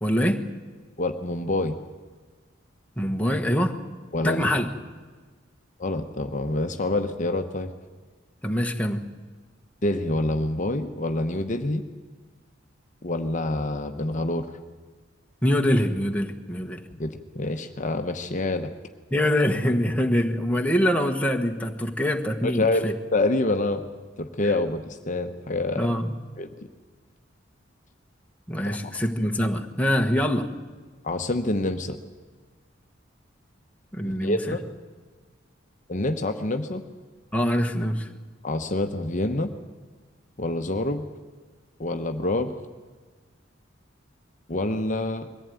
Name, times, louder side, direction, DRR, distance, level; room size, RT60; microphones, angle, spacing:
voice 1, 0.0-0.5 3.0-3.8 4.2-4.7 8.4-9.1 15.4-16.8 19.1-22.9 25.8-26.2 28.5-30.5 33.9-34.6 37.3-38.1, equal, 5° left, 3 dB, 1.3 m, -24 dB
voice 2, 1.0-1.7 4.1-4.5 5.8-7.7 9.8-11.8 13.0-14.5 16.9-18.7 22.4-23.8 24.2-25.9 26.4-26.5 28.6-28.8 31.0-32.0 34.0-34.6 35.9-36.8 38.4-39.5 40.4-41.0 41.8-42.6 44.5-45.3, left 2 dB, 40° left, 6 dB, 1.0 m, -27 dB
22.0 x 15.0 x 9.3 m, 1.4 s
head